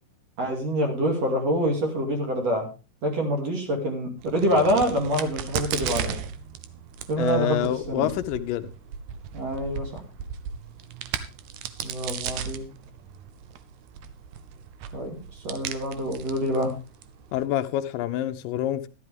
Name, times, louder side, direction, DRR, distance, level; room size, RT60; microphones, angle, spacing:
voice 1, 0.4-2.7 3.0-6.2 7.1-8.1 9.3-10.0 11.8-12.7 14.9-16.8, equal, 50° right, 3.4 m, -26 dB
Crack, 4.2-17.4, right 8 dB, 70° right, 2.0 m, -36 dB
voice 2, 7.2-8.7 17.3-18.9, left 12 dB, 80° left, 2.4 m, -27 dB
12.5 x 12.0 x 3.4 m
omnidirectional pair, 4.0 m